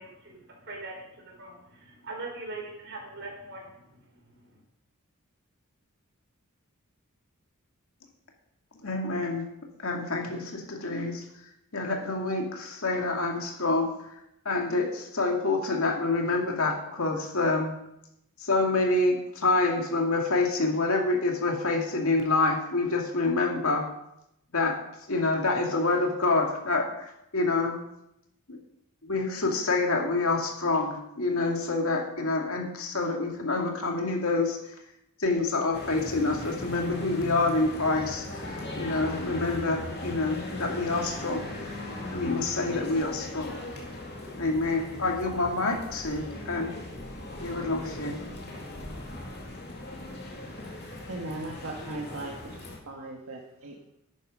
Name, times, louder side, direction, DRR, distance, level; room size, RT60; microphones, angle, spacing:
voice 1, 0.0-4.6, right 2 dB, 55° right, -1 dB, 4.1 m, -42 dB
voice 2, 8.8-9.5 9.8-11.2 11.7-13.9 14.4-17.8 18.4-23.8 24.5-24.8 25.1-27.8 28.5-28.6 29.1-34.6 35.2-41.5 42.1-43.5 44.4-46.7 47.4-48.2, left 3 dB, 70° left, 1 dB, 2.4 m, -27 dB
sound 1, 35.7-52.8, left 1 dB, 50° left, 2.4 m, -39 dB
voice 3, 51.1-52.5 52.9-53.9, right 2 dB, 70° right, -1 dB, 1.5 m, -38 dB
11.0 x 8.9 x 5.3 m, 0.83 s
head